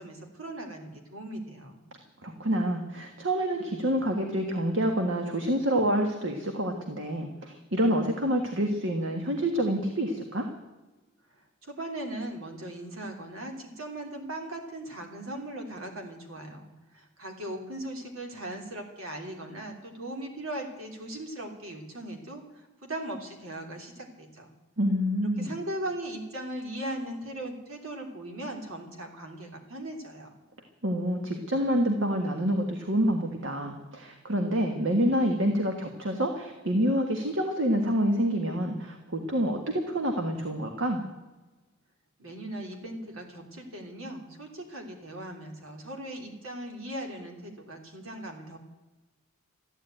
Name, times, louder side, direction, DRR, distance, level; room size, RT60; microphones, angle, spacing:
voice 1, 0.0-1.8 11.3-24.5 25.4-30.3 42.2-48.6, right 1 dB, 80° right, 2 dB, 3.3 m, -39 dB
voice 2, 2.2-10.5 24.8-25.5 30.8-41.0, equal, 65° right, 4 dB, 1.6 m, -27 dB
14.5 x 10.5 x 9.1 m, 1.2 s
head